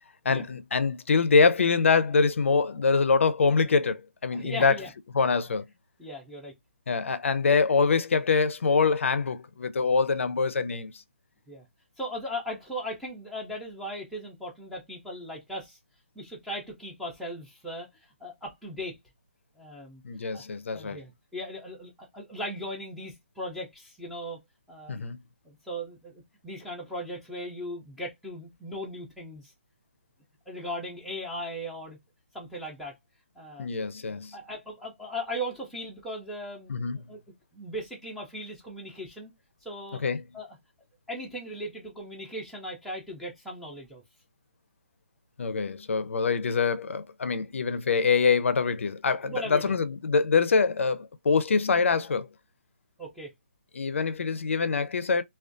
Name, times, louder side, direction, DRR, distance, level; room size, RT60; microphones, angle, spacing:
voice 1, 0.2-4.8 5.1-5.6 6.9-10.9 20.0-21.0 24.9-25.2 33.6-34.4 36.7-37.0 40.0-40.2 45.4-52.3 53.7-55.2, left 5 dB, 75° left, 0.4 m, -24 dB
voice 2, 4.3-4.9 6.0-6.5 11.5-11.6 12.0-15.8 16.2-19.0 19.6-20.0 20.3-20.4 20.7-24.4 24.7-25.0 25.4-29.5 30.5-32.0 32.3-32.9 33.4-33.7 34.3-37.2 37.5-39.3 39.6-40.0 40.3-40.5 41.1-44.0 49.2-49.7 53.0-53.3, equal, ahead, 0.3 m, -38 dB
2.4 x 2.2 x 2.4 m
hypercardioid pair, 170°, 7 cm